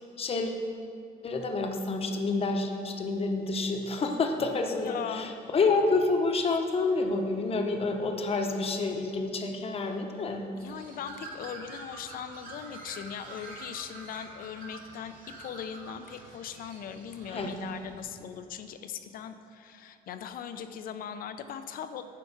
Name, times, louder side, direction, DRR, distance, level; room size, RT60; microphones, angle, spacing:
voice 1, 0.2-0.6 1.2-10.5 17.3-17.5, left 3 dB, 35° left, 4 dB, 0.9 m, -28 dB
voice 2, 4.8-5.3 10.5-22.0, left 8 dB, 60° left, 9 dB, 0.6 m, -40 dB
Bird, 10.6-18.0, right 2 dB, 55° right, 1.9 m, -47 dB
9.8 x 4.5 x 5.8 m, 2.7 s
cardioid pair, 110°, 17 cm